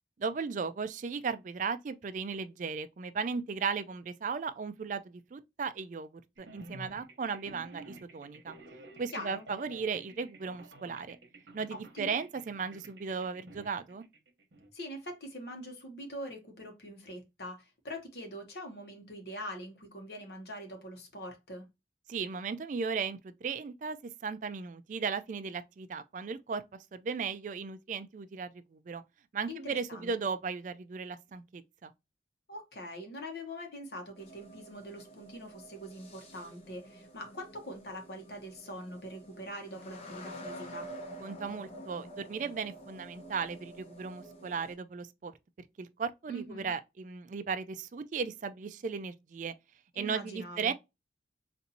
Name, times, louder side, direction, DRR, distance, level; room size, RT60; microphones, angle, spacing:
voice 1, 0.2-6.1 6.4-8.6 9.0-11.2 11.5-14.0 22.1-24.0 24.2-26.6 26.9-29.0 29.3-31.9 41.2-45.3 45.8-49.5 50.0-50.7, right 5 dB, 45° right, 0.3 m, -36 dB
sound 1, 6.4-14.7, right 2 dB, 75° right, 0.9 m, -52 dB
voice 2, 9.1-9.4 11.7-12.2 14.7-21.6 29.5-30.1 32.5-40.9 46.3-46.7 50.0-50.7, equal, 65° left, 1.0 m, -43 dB
sound 2, 34.2-44.7, right 1 dB, 35° left, 0.9 m, -48 dB
4.1 x 2.5 x 2.7 m
head